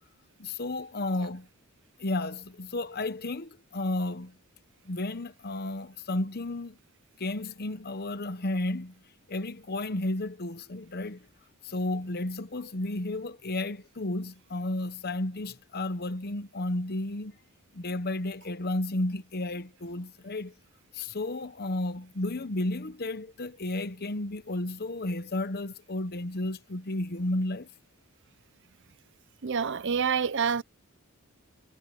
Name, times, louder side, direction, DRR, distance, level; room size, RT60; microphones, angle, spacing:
voice 1, 0.4-1.5 2.0-4.3 4.8-6.8 7.2-8.9 9.3-11.2 11.6-17.4 17.7-20.5 20.9-27.7, left 2 dB, 45° left, 0.9 m, -32 dB
voice 2, 29.4-30.6, right 6 dB, 55° right, 0.7 m, -27 dB
head